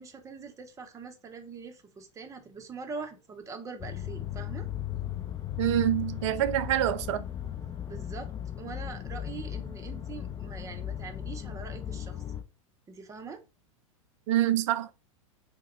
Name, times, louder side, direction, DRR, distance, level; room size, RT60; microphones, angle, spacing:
voice 1, 0.0-4.7 7.9-12.2 12.9-13.4, right 4 dB, 20° right, 0.7 m, -43 dB
sound 1, 3.8-12.4, left 11 dB, 25° left, 0.6 m, -37 dB
voice 2, 5.6-7.2 14.3-14.9, right 12 dB, 65° right, 0.4 m, -26 dB
3.4 x 2.1 x 3.1 m
hypercardioid pair, 100°, 17 cm